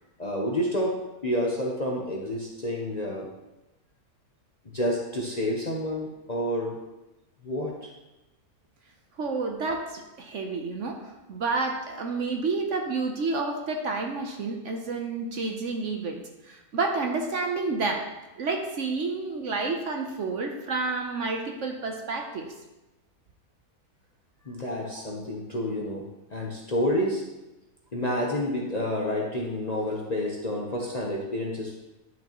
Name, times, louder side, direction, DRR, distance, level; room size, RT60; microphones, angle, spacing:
voice 1, 0.2-1.0 1.2-3.3 4.7-6.8 7.4-7.9 24.4-27.2 27.9-31.7, left 1 dB, 35° left, -2 dB, 0.7 m, -29 dB
voice 2, 9.2-11.0 11.3-18.0 18.4-22.5 24.9-25.0, right 3 dB, 60° right, 3 dB, 1.0 m, -30 dB
10.5 x 6.5 x 3.0 m, 1.0 s
omnidirectional pair, 1.7 m